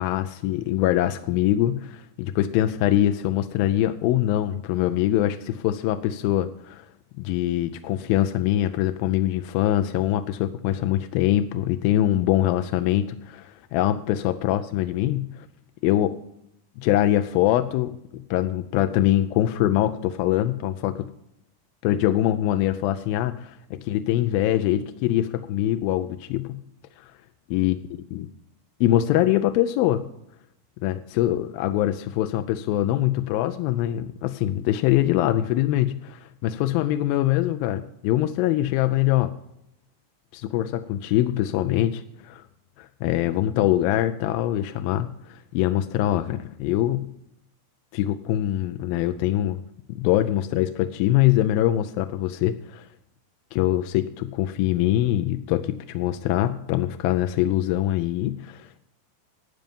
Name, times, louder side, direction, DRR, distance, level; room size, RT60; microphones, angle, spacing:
voice 1, 0.0-6.9 7.2-15.5 15.8-16.2 16.8-21.1 21.8-26.6 27.5-27.8 28.1-28.3 28.8-30.1 30.8-39.3 40.3-42.4 42.8-47.1 47.9-49.6 49.9-52.9 53.5-58.8, left 13 dB, 80° left, 8 dB, 2.2 m, -23 dB
14.5 x 9.0 x 5.4 m, 0.77 s
omnidirectional pair, 4.6 m